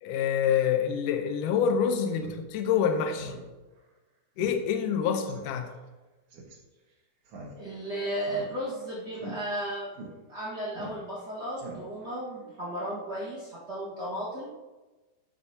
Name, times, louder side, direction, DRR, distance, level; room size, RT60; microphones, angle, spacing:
voice 1, 0.0-3.3 4.4-5.7, left 7 dB, 90° left, 5 dB, 1.8 m, -26 dB
Speech synthesizer, 2.2-2.4 2.7-2.8 3.1-3.5 3.8-3.9 4.4-4.6 4.9-5.0 5.3-5.5 6.3-6.6 7.3-7.8 8.2-8.8 9.1-9.3 10.0-10.1 10.7-11.2 11.6-12.1, right 3 dB, 60° right, 1.6 m, -43 dB
voice 2, 7.6-9.9 10.3-14.5, right 1 dB, 90° right, -7 dB, 0.9 m, -34 dB
12.5 x 8.4 x 2.8 m, 1.2 s
omnidirectional pair, 4.9 m